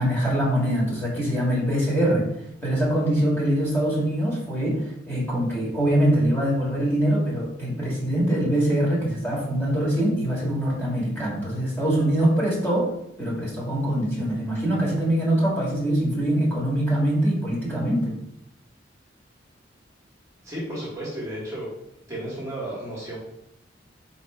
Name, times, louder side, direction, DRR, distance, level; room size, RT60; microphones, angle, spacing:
voice 1, 0.0-2.3 2.6-12.9 13.2-18.2, right 1 dB, 10° left, -6 dB, 1.6 m, -23 dB
voice 2, 20.4-21.7 22.1-23.2, right 1 dB, 15° right, -7 dB, 1.2 m, -33 dB
4.2 x 2.9 x 4.2 m, 0.78 s
head